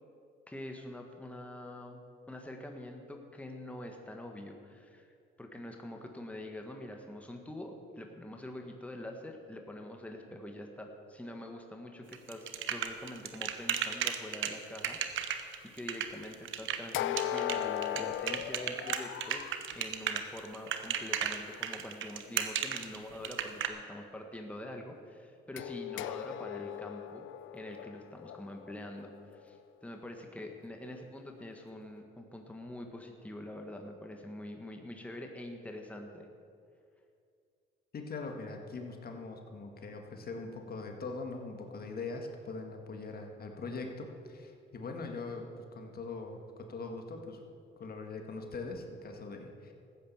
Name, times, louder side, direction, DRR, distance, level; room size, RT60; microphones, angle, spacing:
voice 1, 0.5-2.0 2.3-15.5 15.7-19.4 19.7-27.3 27.5-36.3, left 1 dB, 5° left, 3 dB, 1.5 m, -45 dB
sound 1, 12.1-23.7, right 9 dB, 75° right, 1.1 m, -34 dB
sound 2, 16.9-19.6 25.6-29.6, left 11 dB, 80° left, 0.5 m, -38 dB
voice 2, 37.9-47.4 47.8-49.7, left 3 dB, 50° left, 3 dB, 1.8 m, -42 dB
14.5 x 9.2 x 7.2 m, 2.4 s
cardioid pair, 90°, 20 cm